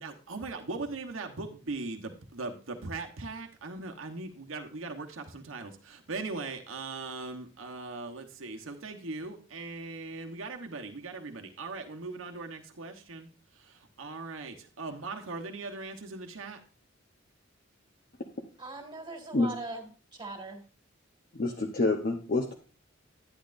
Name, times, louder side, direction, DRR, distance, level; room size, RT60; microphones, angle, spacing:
voice 1, 0.0-16.6, right 3 dB, 80° right, 1.1 m, -39 dB
voice 2, 18.6-20.6, right 3 dB, 25° right, 2.1 m, -41 dB
voice 3, 21.3-22.5, left 2 dB, 50° left, 0.9 m, -27 dB
10.5 x 10.0 x 2.6 m
head